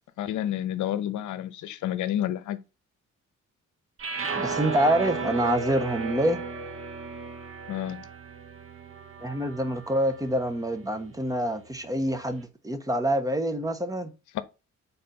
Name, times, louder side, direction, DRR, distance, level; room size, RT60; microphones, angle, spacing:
voice 1, 0.2-2.6 7.7-8.1 14.3-14.4, left 12 dB, 75° left, 0.7 m, -30 dB
sound 1, 4.0-10.3, right 4 dB, 45° right, 1.2 m, -34 dB
voice 2, 4.3-6.4 9.2-14.1, right 1 dB, 10° right, 1.1 m, -26 dB
4.3 x 4.0 x 5.3 m
cardioid pair, 90°, 30 cm